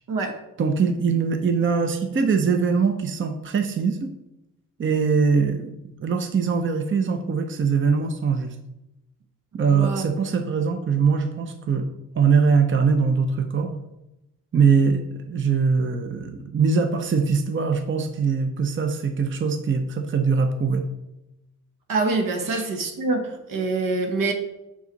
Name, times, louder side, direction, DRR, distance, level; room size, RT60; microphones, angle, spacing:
voice 1, 0.1-0.4 9.7-10.2 21.9-24.3, right 3 dB, 75° right, 4 dB, 1.1 m, -25 dB
voice 2, 0.6-4.1 4.8-5.7 6.0-8.6 9.5-11.9 12.1-13.8 14.5-20.9 22.5-22.6, right 5 dB, 35° right, 7 dB, 0.7 m, -22 dB
5.9 x 4.7 x 4.0 m, 0.92 s
cardioid pair, 65°, 33 cm